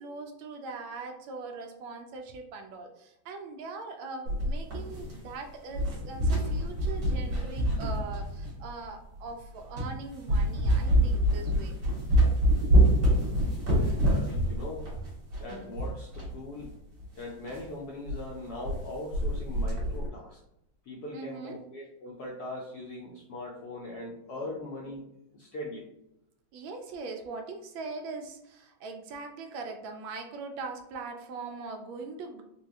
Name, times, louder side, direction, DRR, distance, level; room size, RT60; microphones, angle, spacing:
voice 1, 0.0-11.8 21.1-21.6 24.4-24.6 26.5-32.4, right 3 dB, 75° right, 3 dB, 1.3 m, -41 dB
sound 1, 4.3-5.4 5.7-8.7 9.3-9.4 9.8-10.0 10.3-16.3 16.6-16.7 17.0-17.1 17.5-17.7 18.1-18.2 18.5-18.8 19.1-20.1, right 1 dB, 60° right, 1.9 m, -26 dB
voice 2, 13.7-14.9 15.4-16.7 17.1-20.4 20.9-25.0 25.3-25.9, left 2 dB, 70° left, -3 dB, 0.9 m, -40 dB
4.3 x 2.3 x 2.8 m, 0.82 s
omnidirectional pair, 2.3 m